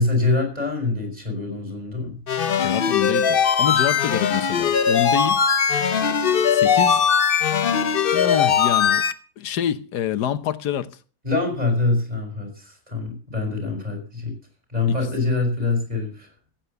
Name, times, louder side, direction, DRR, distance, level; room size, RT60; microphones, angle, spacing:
voice 1, 0.0-2.2 11.2-14.3 14.7-16.3, left 3 dB, 25° right, 5.5 m, -24 dB
sound 1, 2.3-9.1, left 7 dB, 45° left, 0.8 m, -20 dB
voice 2, 2.6-5.4 6.5-7.1 8.1-9.0 9.4-10.9 14.9-15.0, left 10 dB, 80° left, 1.5 m, -26 dB
15.0 x 8.8 x 6.8 m
omnidirectional pair, 1.7 m